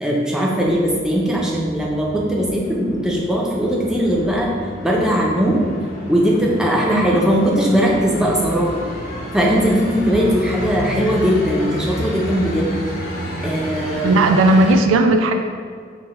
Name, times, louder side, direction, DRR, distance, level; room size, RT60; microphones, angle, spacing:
voice 1, 0.0-4.5 4.8-5.6 6.1-8.7 9.3-12.8 13.4-14.2, equal, 5° right, -3 dB, 0.5 m, -19 dB
sound 1, 0.6-14.7, equal, 45° left, 0.7 m, -31 dB
voice 2, 6.9-7.2 14.0-15.3, right 2 dB, 80° right, 5 dB, 0.3 m, -15 dB
4.8 x 2.1 x 4.2 m, 2.1 s
head